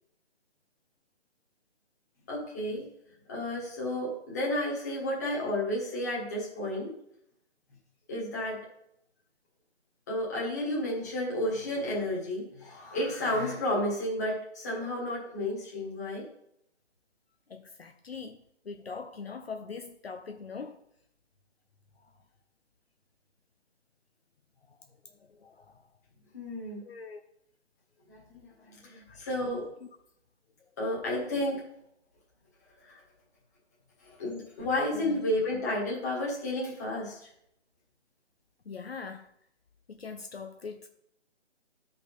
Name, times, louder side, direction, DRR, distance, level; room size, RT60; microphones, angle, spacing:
voice 1, 2.3-2.8 3.3-6.9 8.1-8.6 10.1-16.2 26.3-26.8 28.1-29.7 30.8-31.6 32.9-33.0 34.0-37.3, left 1 dB, 15° left, 1.7 m, -32 dB
voice 2, 17.5-18.4 18.6-20.8 25.1-25.7 26.8-27.2 29.1-29.3 34.9-35.2 38.7-39.3 39.9-40.9, left 5 dB, 55° left, 0.8 m, -42 dB
11.5 x 5.2 x 4.1 m
hypercardioid pair, 175°, 36 cm